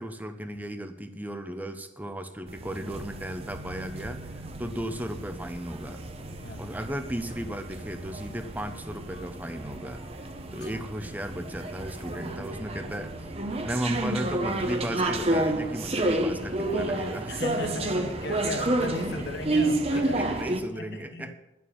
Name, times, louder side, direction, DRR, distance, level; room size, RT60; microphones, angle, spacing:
voice 1, 0.0-6.0 6.6-10.0 10.5-13.3 13.6-17.4 19.2-19.3 19.9-21.3, right 1 dB, 10° right, 7 dB, 0.9 m, -35 dB
sound 1, 2.5-20.6, right 2 dB, 30° right, 1.1 m, -31 dB
voice 2, 6.4-6.7 10.4-10.7 17.3-20.4 20.7-21.3, left 2 dB, 65° left, 7 dB, 1.2 m, -37 dB
11.0 x 7.0 x 9.0 m, 0.93 s
head